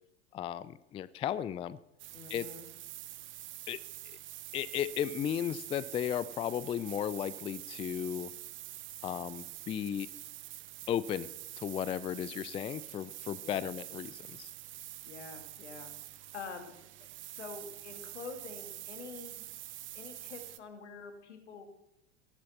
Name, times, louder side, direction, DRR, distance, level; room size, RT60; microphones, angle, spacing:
voice 1, 0.3-1.8 2.3-2.5 3.7-3.8 4.5-8.3 9.0-10.1 10.9-11.3 11.6-14.5, left 10 dB, 15° left, 17 dB, 0.4 m, -35 dB
sound 1, 2.0-20.6, right 15 dB, 35° right, 0.9 m, -46 dB
voice 2, 2.1-2.7 13.4-13.7 15.0-19.5 19.9-21.7, left 5 dB, 75° left, 6 dB, 2.4 m, -47 dB
18.5 x 12.0 x 4.3 m, 0.90 s
figure-of-eight pair, 80°, 35 cm